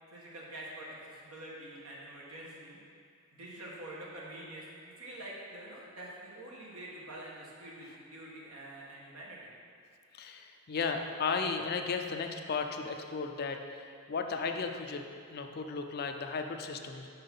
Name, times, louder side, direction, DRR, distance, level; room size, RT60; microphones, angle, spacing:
voice 1, 0.1-2.8 3.3-9.5, right 1 dB, 80° right, -4 dB, 1.5 m, -46 dB
voice 2, 10.1-15.0 15.3-17.1, left 5 dB, 45° left, 5 dB, 0.5 m, -35 dB
5.8 x 5.7 x 5.4 m, 2.3 s
head